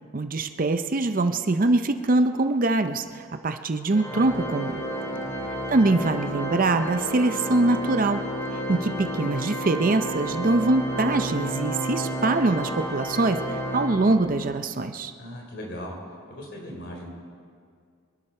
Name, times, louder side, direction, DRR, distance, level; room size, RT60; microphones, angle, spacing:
voice 1, 0.1-4.8 5.7-8.2 8.7-13.4 13.7-15.1, right 2 dB, 40° right, 9 dB, 0.5 m, -23 dB
Organ, 3.9-14.5, equal, 15° left, 2.5 m, -31 dB
voice 2, 5.0-5.5 15.2-16.0 16.3-17.1, equal, 55° left, 0 dB, 3.8 m, -39 dB
25.5 x 11.5 x 4.4 m, 2.2 s
head